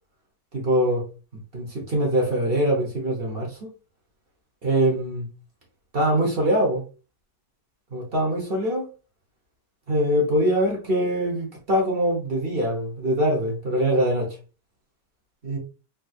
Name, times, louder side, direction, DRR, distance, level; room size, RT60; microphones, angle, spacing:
voice 1, 0.5-1.0 1.5-3.6 4.6-5.3 5.9-6.8 7.9-8.9 9.9-14.4 15.4-15.6, right 1 dB, 45° right, 0.9 m, -23 dB
3.6 x 3.0 x 2.3 m
omnidirectional pair, 1.9 m